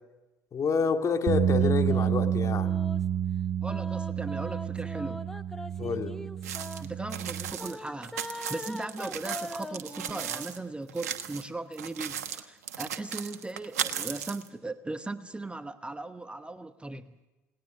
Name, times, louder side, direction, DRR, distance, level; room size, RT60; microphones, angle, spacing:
voice 1, 0.5-2.7 5.8-6.1, left 5 dB, 40° left, 5 dB, 2.2 m, -28 dB
sound 1, 1.3-7.5, right 9 dB, 60° right, 1.6 m, -29 dB
sound 2, 1.5-3.0 3.7-6.8 7.5-10.6, equal, 5° left, 1.3 m, -41 dB
voice 2, 3.6-5.2 6.8-17.1, right 2 dB, 10° right, 11 dB, 1.0 m, -38 dB
sound 3, 6.4-10.6 10.9-11.4 11.7-14.5, right 9 dB, 80° right, 1.3 m, -36 dB
28.5 x 19.0 x 6.6 m, 1.1 s
hypercardioid pair, 65°, 8 cm